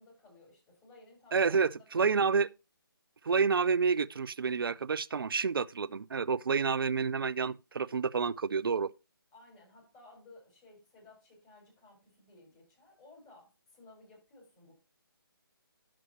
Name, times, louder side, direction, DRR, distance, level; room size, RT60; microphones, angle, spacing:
voice 1, 0.0-2.2 9.3-14.7, left 2 dB, 20° left, 4.8 m, -58 dB
voice 2, 1.3-2.5 3.2-8.9, right 5 dB, 70° right, 0.5 m, -29 dB
11.0 x 7.5 x 2.9 m
figure-of-eight pair, 150°, 12 cm